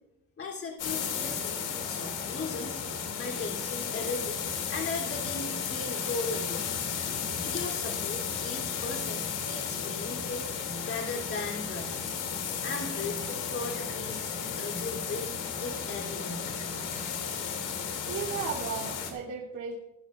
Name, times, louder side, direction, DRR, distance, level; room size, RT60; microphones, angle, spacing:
voice 1, 0.4-2.8 3.2-4.4 4.7-12.0 12.6-16.6, left 3 dB, 45° left, -1 dB, 3.4 m, -38 dB
sound 1, 0.8-19.1, left 6 dB, 90° left, 2.9 m, -34 dB
voice 2, 17.7-19.7, right 6 dB, 85° right, -6 dB, 3.4 m, -36 dB
22.0 x 11.5 x 2.6 m, 0.91 s
cardioid pair, 90°, 30 cm